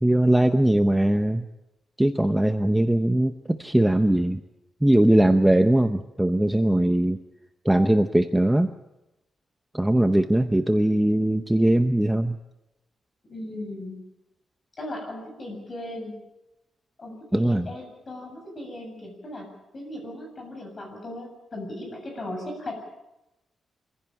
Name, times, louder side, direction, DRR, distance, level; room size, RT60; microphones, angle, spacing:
voice 1, 0.0-1.4 2.0-4.4 4.8-7.2 7.6-8.7 9.7-12.4 17.3-17.7, right 1 dB, 5° right, 7 dB, 0.7 m, -20 dB
voice 2, 13.3-14.0 14.8-16.1 17.0-22.7, left 1 dB, 35° left, 2 dB, 7.7 m, -37 dB
25.0 x 16.0 x 8.8 m, 0.95 s
wide cardioid pair, 150°, 0 cm